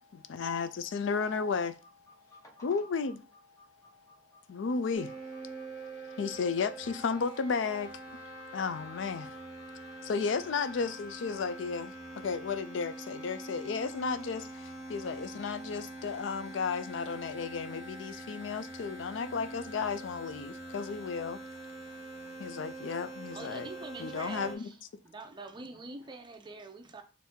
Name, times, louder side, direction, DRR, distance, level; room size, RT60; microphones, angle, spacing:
voice 1, 0.1-1.8 2.6-3.2 4.5-5.1 6.2-7.9 8.5-9.3 10.0-21.4 22.4-23.7 24.0-24.7, left 5 dB, 70° left, 0.4 m, -33 dB
voice 2, 2.3-2.6 3.8-4.4 5.6-5.7 8.3-8.4 9.6-9.7 21.8-22.7, left 2 dB, 15° left, 1.0 m, -60 dB
sound 1, 4.9-24.5, right 2 dB, 50° left, 1.4 m, -44 dB
voice 3, 23.3-24.8 25.0-27.0, right 3 dB, 25° right, 0.6 m, -45 dB
4.4 x 2.6 x 3.6 m
head